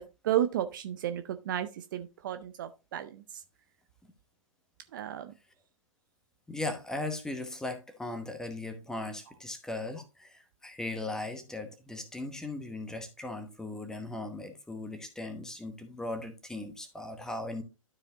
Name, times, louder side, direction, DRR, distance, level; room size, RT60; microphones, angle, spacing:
voice 1, 0.0-3.2 4.9-5.3, right 11 dB, 35° right, 0.6 m, -33 dB
voice 2, 6.5-17.6, left 2 dB, 5° left, 1.0 m, -38 dB
12.0 x 4.9 x 2.8 m
figure-of-eight pair, 120°, 18 cm